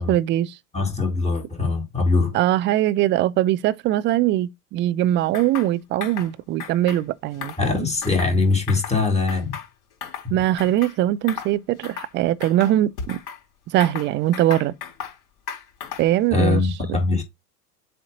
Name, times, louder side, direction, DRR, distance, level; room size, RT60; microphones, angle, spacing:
voice 1, 0.0-0.6 2.3-7.9 10.3-13.2 13.7-14.7 16.0-16.6 16.9-17.2, right 13 dB, 25° right, 0.4 m, -21 dB
voice 2, 0.7-2.4 7.6-9.6 10.2-10.4 16.3-17.2, left 3 dB, 15° left, 2.0 m, -22 dB
sound 1, 5.3-5.7 6.0-6.3 6.6-7.0 7.3-8.4 8.7-9.0 9.3-10.3 10.6-11.0 11.3-11.5 11.8-12.1 12.4-13.4 13.8-15.2 15.5-16.2, left 7 dB, 50° left, 3.8 m, -35 dB
7.6 x 2.8 x 5.0 m
figure-of-eight pair, 85°, 48 cm